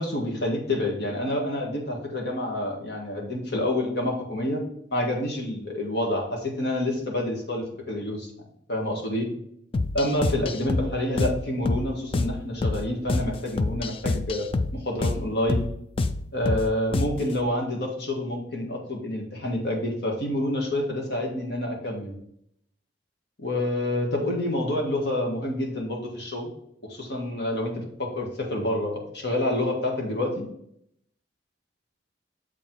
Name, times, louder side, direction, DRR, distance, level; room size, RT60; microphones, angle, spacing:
voice 1, 0.0-4.6 4.9-8.3 8.7-9.3 9.9-14.5 14.7-15.6 16.3-22.2 23.4-26.5 26.9-30.5, left 1 dB, 65° left, 0 dB, 1.6 m, -28 dB
sound 1, 9.7-17.3, left 3 dB, 30° left, 0.4 m, -28 dB
7.0 x 4.6 x 3.9 m, 0.72 s
head